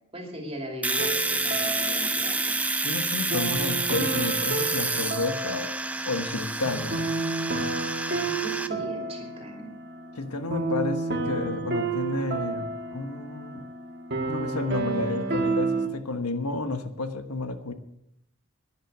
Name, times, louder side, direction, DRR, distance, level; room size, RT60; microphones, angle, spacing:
voice 1, 0.1-2.6 8.2-9.7, right 1 dB, 25° right, 2 dB, 2.6 m, -39 dB
Domestic sounds home sounds, 0.8-8.7, right 2 dB, 5° right, 0.5 m, -29 dB
sound 1, 1.0-15.9, right 3 dB, 50° right, 1.6 m, -31 dB
voice 2, 2.8-5.7 6.0-7.1 10.1-13.7 14.3-17.7, left 3 dB, 90° left, 8 dB, 1.3 m, -31 dB
sound 2, 6.6-9.4, equal, 15° left, 4.0 m, -46 dB
11.0 x 10.0 x 8.0 m, 0.78 s
head